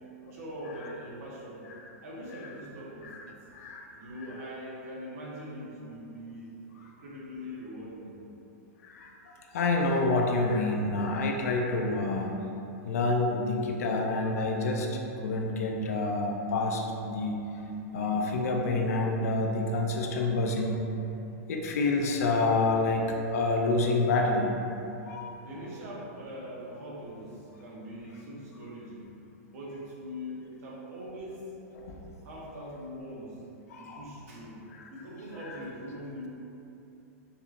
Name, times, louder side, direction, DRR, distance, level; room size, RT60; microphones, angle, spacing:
voice 1, 0.3-1.7 2.0-3.0 3.9-6.5 6.8-8.1 25.4-29.1 29.5-31.5 32.2-33.4 33.8-34.6 34.9-36.3, equal, 65° right, -5 dB, 1.1 m, -42 dB
voice 2, 3.5-3.9 8.8-12.3 12.8-17.4 17.9-20.8 21.5-24.6 25.1-25.4 31.7-32.0 33.7-34.0 34.7-34.9 35.4-35.6, left 2 dB, 70° left, 1 dB, 0.5 m, -28 dB
5.4 x 2.8 x 2.5 m, 2.9 s
supercardioid pair, 160°, 8 cm